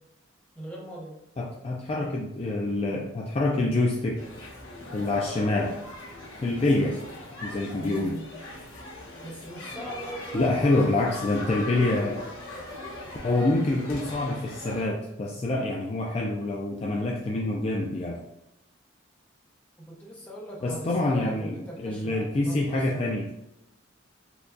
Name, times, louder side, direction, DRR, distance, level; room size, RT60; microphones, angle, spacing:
voice 1, 0.5-1.2 6.6-6.9 7.8-8.3 9.2-10.9 19.8-23.1, right 1 dB, 5° left, -3 dB, 0.7 m, -40 dB
voice 2, 1.4-4.2 4.9-5.8 6.4-7.0 7.4-8.2 10.3-12.2 13.2-18.2 20.6-23.3, left 2 dB, 30° left, -2 dB, 0.3 m, -26 dB
sound 1, 4.1-14.8, left 2 dB, 85° left, 1.2 m, -40 dB
4.4 x 2.2 x 2.5 m, 0.87 s
head